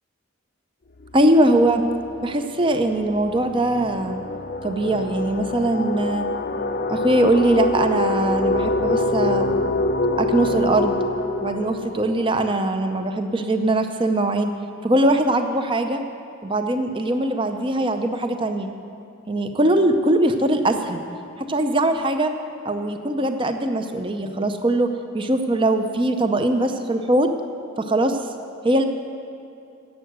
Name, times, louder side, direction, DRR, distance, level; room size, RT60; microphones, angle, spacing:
sound 1, 1.0-1.3 1.6-13.1, left 2 dB, 40° left, 0.5 m, -26 dB
voice 1, 1.1-1.8 2.2-4.2 4.6-6.2 6.9-9.8 10.2-11.0 11.4-14.5 14.8-16.0 16.4-18.7 19.3-21.0 21.5-22.3 22.6-27.3 27.8-28.2 28.6-28.9, right 1 dB, 25° right, 7 dB, 0.6 m, -21 dB
11.5 x 7.8 x 7.9 m, 2.6 s
head